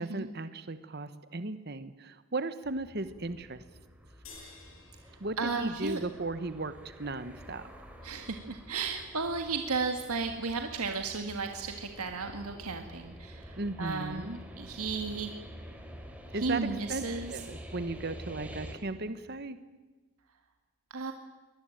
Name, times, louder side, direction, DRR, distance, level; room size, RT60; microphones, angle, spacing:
voice 1, 0.0-3.6 5.2-7.6 13.6-14.4 16.3-19.6, right 2 dB, 45° right, 12 dB, 1.1 m, -36 dB
sound 1, 2.6-18.8, equal, 5° right, 3.1 m, -48 dB
sound 2, 4.2-6.8, left 4 dB, 70° left, 7.8 m, -54 dB
voice 2, 5.4-6.0 8.0-15.3 16.4-17.4 20.9-21.1, right 4 dB, 90° right, 5 dB, 1.7 m, -34 dB
23.0 x 20.0 x 9.1 m, 1.2 s
head